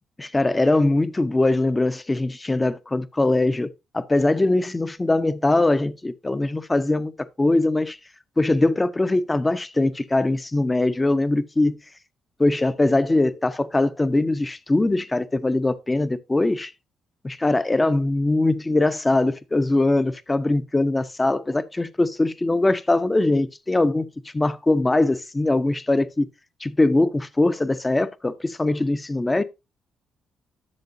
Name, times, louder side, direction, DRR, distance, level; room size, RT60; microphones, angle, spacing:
voice 1, 0.2-8.0 8.4-11.8 12.4-16.7 17.2-24.1 24.3-26.3 26.6-29.4, left 2 dB, 20° left, 0.8 m, -21 dB
12.0 x 6.7 x 2.7 m
cardioid pair, 90°, 0 cm